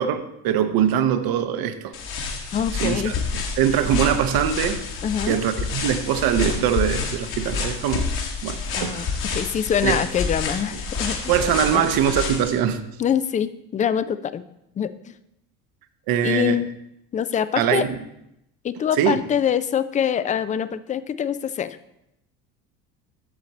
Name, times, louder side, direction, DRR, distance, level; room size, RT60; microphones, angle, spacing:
voice 1, 0.0-1.9 2.8-3.1 3.6-4.8 5.3-8.1 8.4-9.1 9.8-10.0 11.3-12.8 16.1-16.6 17.6-18.0 19.0-19.2, right 9 dB, 60° right, 10 dB, 0.9 m, -22 dB
sound 1, 1.9-12.6, left 4 dB, 60° left, 1.9 m, -28 dB
voice 2, 2.5-3.1 5.0-5.4 8.8-9.1 9.3-11.3 11.7-11.8 13.0-14.4 14.8-14.9 16.2-16.7 17.1-17.9 18.6-21.8, left 8 dB, 20° left, 14 dB, 0.3 m, -24 dB
8.3 x 6.5 x 4.2 m, 0.81 s
hypercardioid pair, 70°, 41 cm